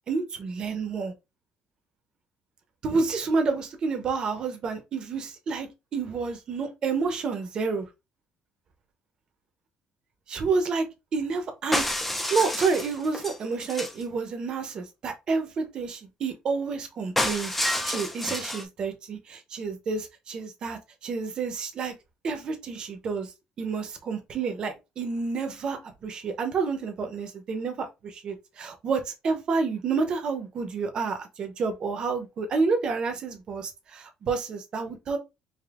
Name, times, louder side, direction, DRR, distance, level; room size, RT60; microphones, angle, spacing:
voice 1, 0.1-1.1 2.8-7.9 10.3-10.9 11.1-11.9 12.3-17.6 17.8-21.9 22.2-23.3 23.6-35.2, right 4 dB, 35° right, 0.8 m, -29 dB
sound 1, 11.7-14.0 17.2-18.6, left 1 dB, 5° left, 0.5 m, -29 dB
5.1 x 2.7 x 2.4 m
cardioid pair, 170°, 3 cm